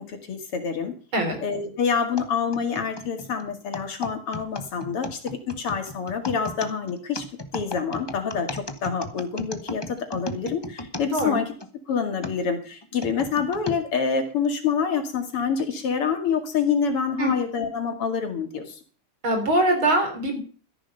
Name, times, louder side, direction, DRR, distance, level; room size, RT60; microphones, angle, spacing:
voice 1, 0.0-1.0 1.4-11.5 11.9-18.8, left 6 dB, 90° left, 5 dB, 3.1 m, -27 dB
sound 1, 2.2-11.7 12.2-13.8 14.4-14.5 15.4-15.7, left 2 dB, 35° left, 0.4 m, -35 dB
voice 2, 11.1-11.4 17.2-17.3 19.2-20.4, right 1 dB, 65° right, 4 dB, 4.6 m, -22 dB
14.0 x 10.5 x 5.5 m, 0.40 s
omnidirectional pair, 2.4 m